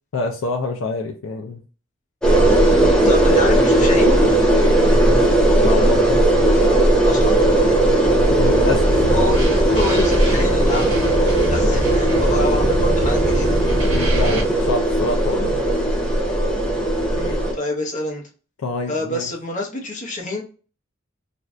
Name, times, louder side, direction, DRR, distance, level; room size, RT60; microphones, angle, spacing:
voice 1, 0.1-1.6 2.8-3.4 5.6-6.1 7.7-8.0 8.3-9.2 13.9-15.6 18.6-19.3, left 3 dB, 70° left, 2 dB, 0.4 m, -26 dB
sound 1, 2.2-17.5, right 1 dB, 5° left, 0.6 m, -17 dB
voice 2, 3.0-4.2 4.7-5.0 7.0-7.4 9.1-13.6 17.1-18.2 18.9-20.4, left 2 dB, 35° left, 0 dB, 0.8 m, -27 dB
sound 2, 8.3-14.4, right 1 dB, 80° right, 1.0 m, -25 dB
2.6 x 2.3 x 3.2 m, 0.37 s
head